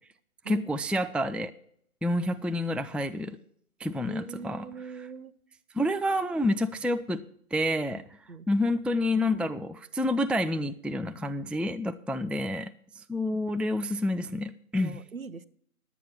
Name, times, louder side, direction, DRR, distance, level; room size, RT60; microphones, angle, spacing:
voice 1, 0.5-1.5 2.0-3.4 3.8-4.7 5.7-7.2 7.5-8.0 8.5-12.7 13.1-15.0, left 1 dB, 5° right, 9 dB, 0.3 m, -28 dB
voice 2, 4.1-5.3 8.3-8.5 14.7-15.5, right 4 dB, 65° right, 15 dB, 0.8 m, -41 dB
11.0 x 8.3 x 5.7 m, 0.65 s
figure-of-eight pair, 175°, 45 cm